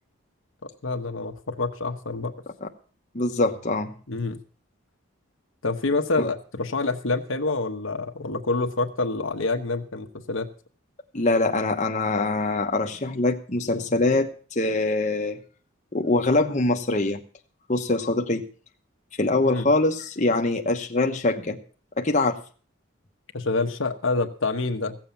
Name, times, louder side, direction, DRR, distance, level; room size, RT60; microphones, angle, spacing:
voice 1, 0.6-2.3 4.1-4.4 5.6-10.5 19.5-19.7 23.3-25.0, left 3 dB, 65° left, 6 dB, 1.2 m, -27 dB
voice 2, 3.1-3.9 6.2-6.3 11.1-15.4 15.9-17.2 17.7-18.4 19.2-21.6 22.0-22.4, left 2 dB, 35° left, 3 dB, 1.1 m, -23 dB
16.0 x 7.5 x 6.9 m, 0.41 s
head